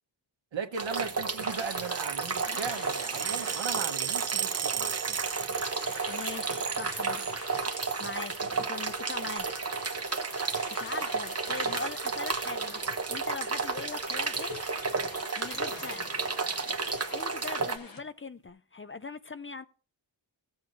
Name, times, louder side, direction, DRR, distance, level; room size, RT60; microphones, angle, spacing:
voice 1, 0.5-5.2, right 5 dB, 80° right, 1.2 m, -38 dB
sound 1, 0.7-17.8, right 4 dB, 35° right, 1.0 m, -33 dB
sound 2, 1.4-18.0, left 3 dB, 50° left, 1.4 m, -47 dB
sound 3, 1.5-7.4 7.7-8.3 9.0-9.5 10.6-10.8 11.8-12.1 12.4-12.5 12.8-12.9 13.2-13.6 14.2-14.3 15.3-15.4, right 8 dB, 60° right, 0.9 m, -36 dB
voice 2, 6.1-7.4 8.0-9.5 10.7-14.6 15.4-16.2 17.1-19.6, left 4 dB, 30° left, 0.4 m, -41 dB
15.5 x 7.8 x 2.7 m
wide cardioid pair, 85°, 45 cm